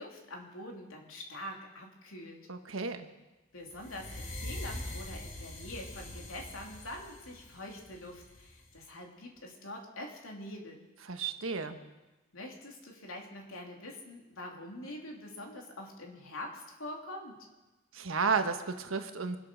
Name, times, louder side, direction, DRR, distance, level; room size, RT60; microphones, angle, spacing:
voice 1, 0.0-2.5 3.5-10.9 12.3-17.5, left 1 dB, 85° left, 0 dB, 3.1 m, -45 dB
voice 2, 2.5-3.1 11.1-11.8 17.9-19.4, right 5 dB, 80° right, 8 dB, 1.3 m, -32 dB
sound 1, 3.7-8.8, left 1 dB, 65° left, 2.6 m, -43 dB
24.5 x 8.4 x 6.3 m, 1.1 s
head